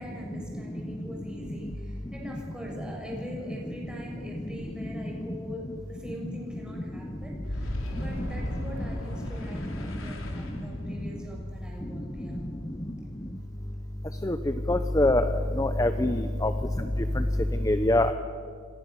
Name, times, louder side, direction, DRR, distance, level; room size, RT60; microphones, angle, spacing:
voice 1, 0.0-12.4 16.4-16.5, equal, 5° right, -1 dB, 6.9 m, -42 dB
Boom, 7.4-14.0, equal, 75° left, 4.3 m, -37 dB
voice 2, 14.7-16.5 17.6-18.1, left 1 dB, 15° left, 9 dB, 0.9 m, -23 dB
28.0 x 26.0 x 7.2 m, 2.1 s
head